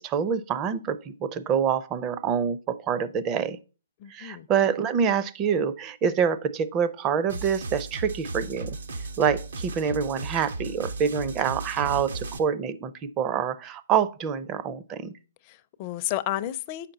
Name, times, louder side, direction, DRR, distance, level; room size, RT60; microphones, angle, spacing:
voice 1, 0.0-3.6 4.1-8.8 9.2-15.2, right 7 dB, 25° right, 0.5 m, -26 dB
voice 2, 4.0-4.5 15.5-16.9, left 14 dB, 35° left, 0.5 m, -32 dB
sound 1, 7.3-12.4, right 3 dB, 80° right, 0.9 m, -35 dB
8.6 x 5.8 x 4.0 m
hypercardioid pair, 140°, 0 cm